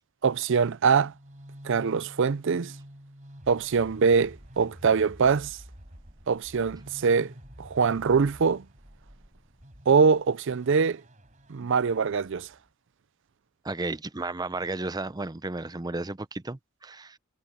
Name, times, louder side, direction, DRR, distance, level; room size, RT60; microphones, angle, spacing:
voice 1, 0.2-1.1 1.6-2.7 3.5-5.6 6.3-7.3 7.6-8.7 9.9-11.0 11.5-12.5, right 5 dB, 60° right, 0.5 m, -23 dB
sound 1, 0.8-12.7, equal, 35° right, 4.6 m, -49 dB
voice 2, 13.6-17.2, right 2 dB, 20° right, 0.6 m, -33 dB
head